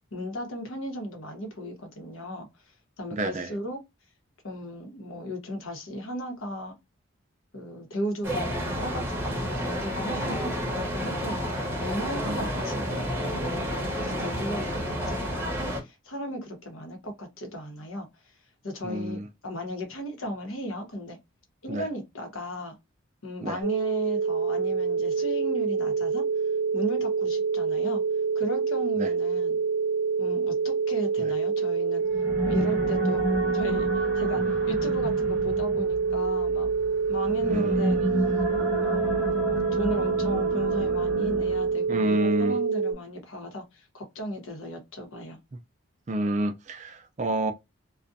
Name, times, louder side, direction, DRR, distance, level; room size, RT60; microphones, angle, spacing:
voice 1, 0.1-3.8 4.4-6.7 7.5-18.4 18.6-21.2 21.6-22.8 23.2-26.2 26.7-28.0 28.3-29.6 30.2-32.0 32.4-33.2 33.5-36.7 37.1-38.0 38.8-45.4, equal, 75° left, 0.9 m, -36 dB
voice 2, 3.1-3.5 10.2-10.4 12.2-12.6 18.8-19.3 21.7-21.9 23.4-23.6 29.0-29.1 32.6-32.7 34.4-34.5 37.4-37.8 41.9-42.6 46.1-47.5, right 1 dB, 35° right, 0.3 m, -29 dB
sound 1, 8.2-15.8, equal, 10° right, 0.8 m, -30 dB
sound 2, 23.6-42.9, right 5 dB, 80° right, 0.7 m, -26 dB
sound 3, 32.0-41.9, equal, 15° left, 1.2 m, -31 dB
2.4 x 2.1 x 2.6 m
head